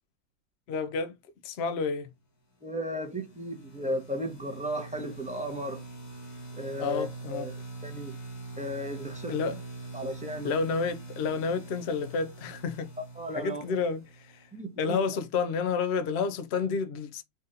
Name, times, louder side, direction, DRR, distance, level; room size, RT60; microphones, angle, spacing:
voice 1, 0.7-1.2 1.4-2.1 6.8-7.5 9.3-9.6 10.4-12.9 13.3-14.5 14.8-17.2, left 5 dB, 75° left, 0.5 m, -30 dB
voice 2, 2.6-5.8 6.6-7.5 7.8-8.1 8.6-9.3 9.9-10.5 13.2-13.7 14.5-15.0, equal, 10° right, 0.5 m, -35 dB
sound 1, 2.8-14.6, right 2 dB, 30° left, 0.9 m, -44 dB
4.1 x 2.6 x 3.8 m
omnidirectional pair, 2.0 m